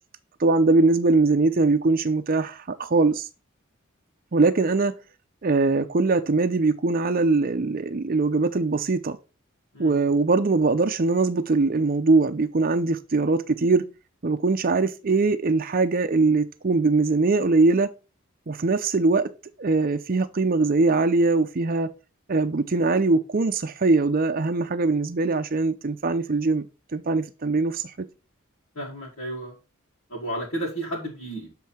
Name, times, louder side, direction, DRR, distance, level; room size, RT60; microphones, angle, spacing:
voice 1, 0.4-3.3 4.3-4.9 5.4-9.2 9.8-13.8 14.2-17.9 18.5-19.3 19.6-21.9 22.3-26.7 26.9-28.1, right 3 dB, 45° right, 0.6 m, -22 dB
voice 2, 9.7-10.0 28.8-29.5 30.1-31.5, right 1 dB, 80° left, 2.3 m, -32 dB
7.5 x 3.8 x 4.4 m
head